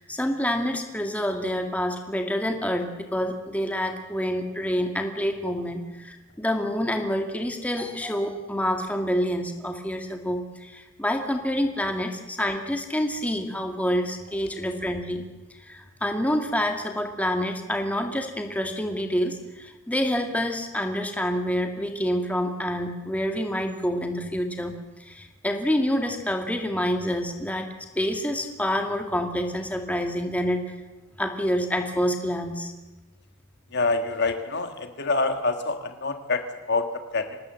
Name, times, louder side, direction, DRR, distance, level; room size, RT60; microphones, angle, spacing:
voice 1, 0.0-15.2 15.6-24.7 25.0-27.7 28.0-30.7 31.2-32.7, equal, 5° left, 4 dB, 2.2 m, -27 dB
voice 2, 33.7-37.4, left 3 dB, 50° left, 7 dB, 1.8 m, -26 dB
26.0 x 19.0 x 7.8 m, 1.1 s
head